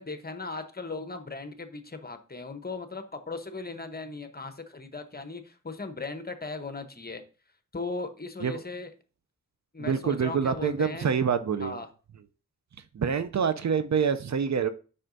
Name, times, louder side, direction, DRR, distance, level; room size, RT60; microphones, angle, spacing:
voice 1, 0.0-7.2 7.7-8.9 9.7-11.1 11.6-11.9, left 3 dB, 30° left, 7 dB, 0.9 m, -37 dB
voice 2, 9.8-11.8 12.9-14.7, right 6 dB, 55° right, 11 dB, 0.5 m, -26 dB
7.6 x 5.6 x 2.6 m, 0.36 s
cardioid pair, 50°, 33 cm